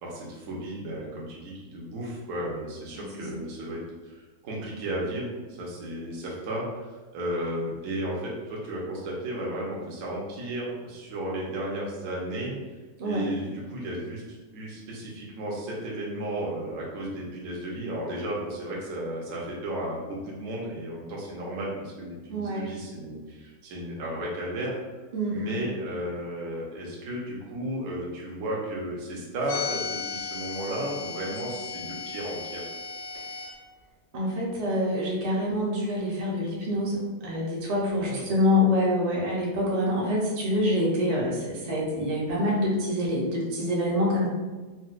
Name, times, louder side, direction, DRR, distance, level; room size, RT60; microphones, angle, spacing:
voice 1, 0.0-3.8 4.1-6.8 7.1-12.6 13.0-24.8 25.3-32.6 38.0-38.2, right 1 dB, 65° right, -4 dB, 1.1 m, -34 dB
voice 2, 22.3-22.7 25.1-25.7 34.1-44.3, left 1 dB, 45° right, -4 dB, 0.5 m, -26 dB
sound 1, 29.4-33.5, left 6 dB, 65° left, 0.7 m, -35 dB
4.1 x 2.1 x 2.4 m, 1.2 s
omnidirectional pair, 1.6 m